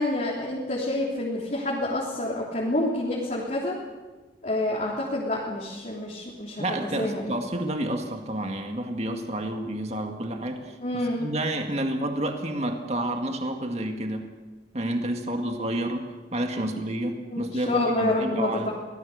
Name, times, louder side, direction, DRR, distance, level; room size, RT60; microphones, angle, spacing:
voice 1, 0.0-3.8 4.4-6.6 7.0-7.4 10.8-11.3 17.3-18.7, left 1 dB, 40° left, -5 dB, 3.6 m, -28 dB
voice 2, 6.6-10.8 11.2-14.3 14.7-18.7, right 1 dB, 35° right, 4 dB, 1.9 m, -29 dB
25.0 x 19.0 x 6.9 m, 1.2 s
head